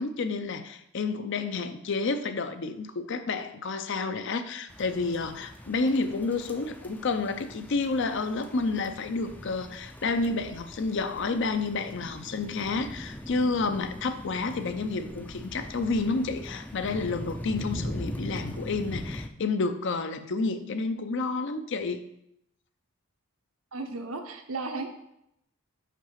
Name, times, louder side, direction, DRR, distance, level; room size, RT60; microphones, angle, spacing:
voice 1, 0.0-22.1, left 3 dB, 55° left, 10 dB, 0.5 m, -30 dB
sound 1, 4.7-19.3, left 1 dB, 10° left, 0.4 m, -41 dB
voice 2, 23.7-24.9, right 3 dB, 75° right, 5 dB, 1.0 m, -34 dB
5.8 x 4.7 x 5.7 m, 0.79 s
head